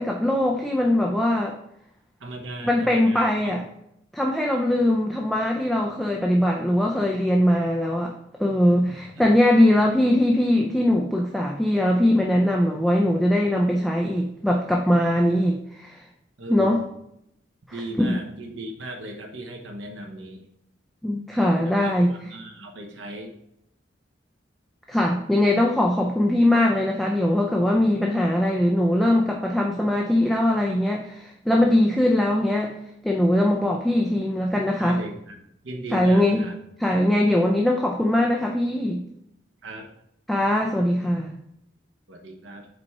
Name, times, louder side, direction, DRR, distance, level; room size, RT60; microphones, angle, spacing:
voice 1, 0.0-1.5 2.6-3.6 4.1-8.1 8.4-16.0 16.5-16.8 18.0-18.1 21.0-22.1 24.9-32.7 33.0-35.0 35.9-36.4 36.8-39.0 40.3-41.3, left 1 dB, ahead, 0 dB, 0.4 m, -21 dB
voice 2, 2.2-3.5 9.1-9.2 16.4-16.9 17.7-20.5 21.6-23.4 34.8-35.4 35.6-36.6 39.6-39.9 42.1-42.7, right 1 dB, 90° right, 2 dB, 1.0 m, -37 dB
5.2 x 4.2 x 4.6 m, 0.76 s
head